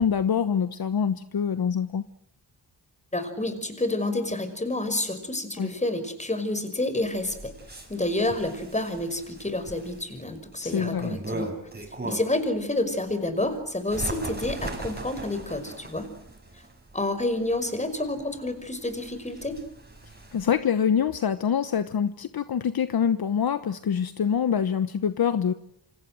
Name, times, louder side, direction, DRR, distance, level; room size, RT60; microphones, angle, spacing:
voice 1, 0.0-2.0 5.6-5.7 10.6-11.2 20.3-25.5, left 7 dB, 60° left, 11 dB, 1.2 m, -25 dB
voice 2, 3.1-7.5 7.9-11.5 12.0-16.1 16.9-19.6, left 2 dB, 15° left, 10 dB, 5.6 m, -29 dB
Bird, 7.0-12.5 12.9-20.6, right 2 dB, 20° right, 6.8 m, -39 dB
28.5 x 26.0 x 7.9 m, 0.76 s
cardioid pair, 95°, 42 cm